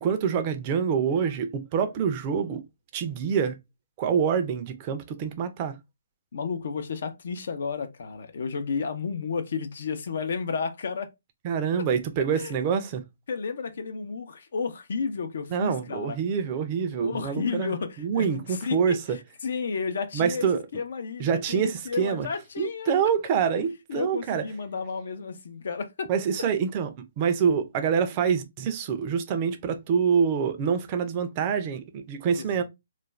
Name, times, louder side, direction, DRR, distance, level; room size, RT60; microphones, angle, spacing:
voice 1, 0.0-2.6 2.9-3.6 4.0-5.8 11.4-13.0 15.5-19.2 20.1-20.6 21.2-22.3 22.6-24.4 26.1-26.9 27.2-32.6, right 7 dB, 30° right, 0.5 m, -26 dB
voice 2, 6.3-11.1 12.3-12.5 13.3-16.2 16.9-20.5 20.7-22.9 23.9-26.1 32.3-32.6, left 5 dB, 65° left, 0.6 m, -32 dB
2.4 x 2.2 x 3.1 m
hypercardioid pair, 155°, 0 cm